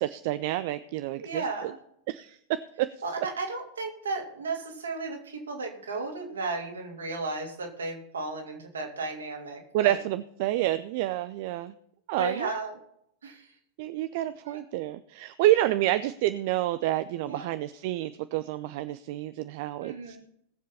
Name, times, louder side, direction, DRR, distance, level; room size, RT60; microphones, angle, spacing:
voice 1, 0.0-1.7 2.1-2.9 9.7-11.7 12.1-12.5 13.8-20.2, right 14 dB, 50° right, 13 dB, 0.5 m, -28 dB
voice 2, 1.1-1.8 3.0-10.0 12.2-12.8 13.2-13.5 14.4-14.6 17.2-17.5 19.8-20.2, right 3 dB, 70° right, 1 dB, 3.0 m, -34 dB
19.0 x 7.5 x 4.2 m, 0.71 s
figure-of-eight pair, 90°, 0 cm